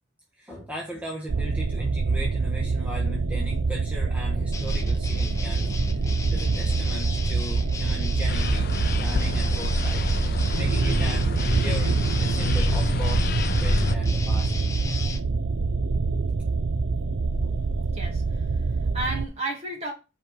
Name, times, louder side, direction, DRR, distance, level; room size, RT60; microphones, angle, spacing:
voice 1, 0.4-8.7 9.0-10.3 10.6-13.3 13.6-14.5 15.8-15.9 16.4-16.6 17.4-17.6, equal, 5° right, -2 dB, 1.2 m, -38 dB
sound 1, 1.3-19.3, right 4 dB, 75° right, 0.6 m, -25 dB
sound 2, 4.5-15.2, left 2 dB, 15° left, 0.7 m, -36 dB
sound 3, 8.3-14.0, left 4 dB, 50° left, 0.5 m, -29 dB
voice 2, 17.3-19.9, right 2 dB, 30° right, -1 dB, 2.5 m, -34 dB
5.5 x 5.1 x 6.3 m, 0.29 s
head